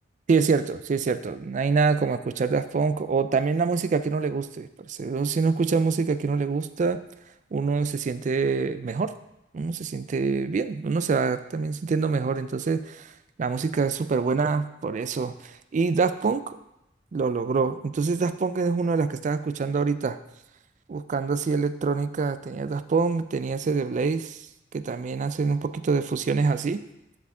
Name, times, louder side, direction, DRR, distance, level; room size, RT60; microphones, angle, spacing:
voice 1, 0.3-7.0 7.5-9.1 9.5-13.1 13.4-16.6 17.1-20.2 20.9-24.4 24.7-26.8, right 4 dB, 40° right, 13 dB, 0.3 m, -25 dB
10.5 x 4.8 x 3.6 m, 0.87 s
head